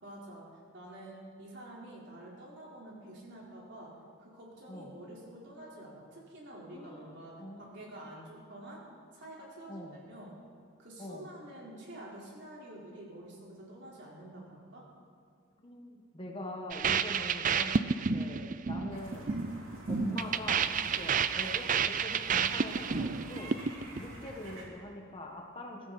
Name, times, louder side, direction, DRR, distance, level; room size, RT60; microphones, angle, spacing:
voice 1, 0.0-3.9 4.2-8.8 9.1-10.3 10.8-14.8, right 1 dB, 55° right, -4 dB, 4.2 m, -48 dB
voice 2, 6.7-8.0 9.7-10.0 11.0-11.3 15.6-19.3 19.9-23.5 24.0-25.9, left 1 dB, 25° left, 1 dB, 1.5 m, -43 dB
sound 1, 16.7-24.0, right 6 dB, 40° right, 0.4 m, -30 dB
sound 2, 18.9-24.7, right 1 dB, 70° right, 3.6 m, -49 dB
22.5 x 14.0 x 4.2 m, 2.3 s
head